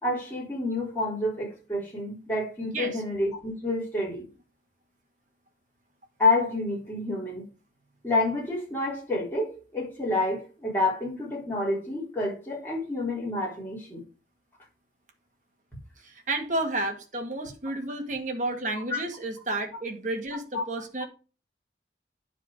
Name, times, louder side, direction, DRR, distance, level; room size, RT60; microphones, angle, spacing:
voice 1, 0.0-4.3 6.2-7.5 8.0-14.0 18.9-19.0 20.5-20.6, left 2 dB, 10° left, 4.0 m, -28 dB
voice 2, 16.0-21.0, right 2 dB, 45° right, 1.9 m, -31 dB
9.8 x 4.7 x 5.0 m
head